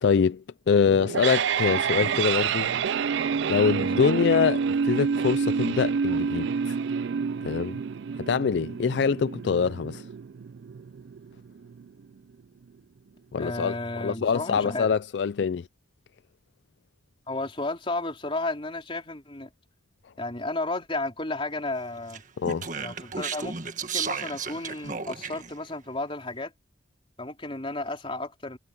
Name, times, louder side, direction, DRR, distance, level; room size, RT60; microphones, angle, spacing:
voice 1, 0.0-2.7 3.5-6.8 7.4-7.8 8.2-10.1 13.3-15.7 22.4-22.7, left 6 dB, 65° left, 0.4 m, -24 dB
sound 1, 0.9-11.9, right 6 dB, 70° right, 0.4 m, -28 dB
voice 2, 3.7-4.1 13.4-14.9 17.3-19.5 20.2-22.2 22.8-23.6 23.9-26.5 27.2-28.6, left 2 dB, 30° left, 3.7 m, -33 dB
Speech, 22.1-25.5, right 5 dB, 45° right, 1.6 m, -33 dB
head